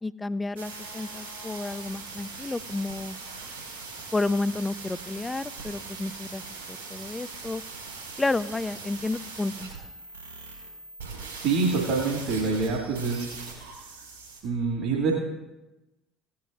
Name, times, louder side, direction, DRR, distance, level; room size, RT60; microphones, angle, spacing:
voice 1, 0.0-3.2 4.1-6.4 6.7-7.6 8.2-9.7, left 2 dB, 15° left, 16 dB, 0.4 m, -31 dB
sound 1, 0.6-14.4, right 4 dB, 85° right, 4.5 m, -41 dB
voice 2, 11.4-13.3 14.4-15.1, right 4 dB, 60° right, -3 dB, 2.1 m, -26 dB
17.0 x 11.0 x 2.6 m, 1.0 s
figure-of-eight pair, 60°, 0 cm